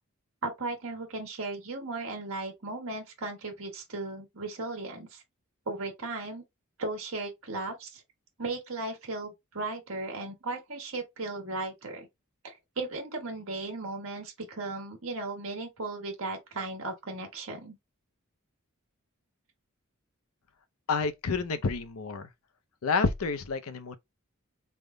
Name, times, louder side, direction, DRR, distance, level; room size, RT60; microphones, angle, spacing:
voice 1, 0.4-5.2 5.7-6.4 6.8-8.0 8.4-12.1 12.4-17.8, right 2 dB, 65° right, 1.4 m, -36 dB
voice 2, 20.9-22.3 22.8-24.0, left 4 dB, 70° left, 0.5 m, -29 dB
3.4 x 2.1 x 3.7 m
head